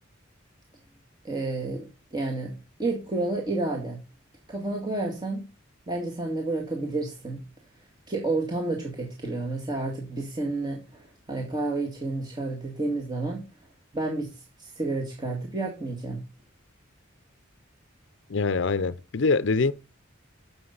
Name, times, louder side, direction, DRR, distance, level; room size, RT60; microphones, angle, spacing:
voice 1, 1.2-4.0 4.5-5.5 5.9-7.4 8.1-13.5 13.9-16.2, right 2 dB, 20° right, 2.0 m, -30 dB
voice 2, 18.3-19.7, left 4 dB, 65° left, 0.6 m, -24 dB
11.0 x 7.1 x 3.9 m
head